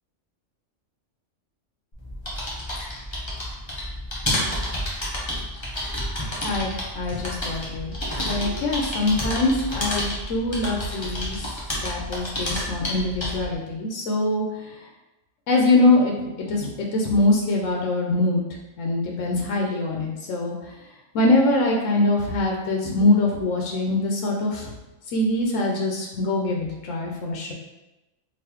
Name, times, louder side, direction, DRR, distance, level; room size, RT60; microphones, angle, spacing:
sound 1, 1.9-13.5, left 1 dB, 25° left, 0.8 m, -30 dB
voice 1, 6.4-8.0 8.2-11.4 11.8-14.4 15.5-18.4 18.8-20.5 21.1-24.7 25.1-27.5, left 2 dB, 90° left, 0 dB, 1.0 m, -23 dB
4.0 x 2.6 x 2.9 m, 0.98 s
omnidirectional pair, 1.3 m